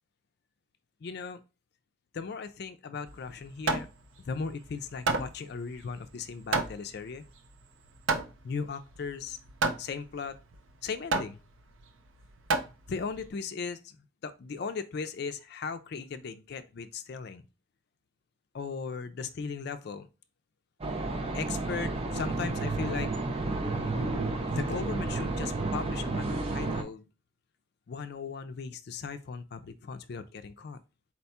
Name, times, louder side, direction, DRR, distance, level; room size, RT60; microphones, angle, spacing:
voice 1, 1.0-1.4 2.1-3.9 4.3-7.2 8.4-9.4 9.8-10.4 10.8-11.4 12.9-14.0 14.2-17.4 18.5-20.1 21.1-23.1 24.6-27.1 27.9-30.8, left 5 dB, 55° left, 0.4 m, -37 dB
Hammer, 3.1-13.3, right 3 dB, 85° right, 0.6 m, -33 dB
sound 1, 20.8-26.8, right 2 dB, 30° right, 0.5 m, -31 dB
4.3 x 2.3 x 4.1 m
head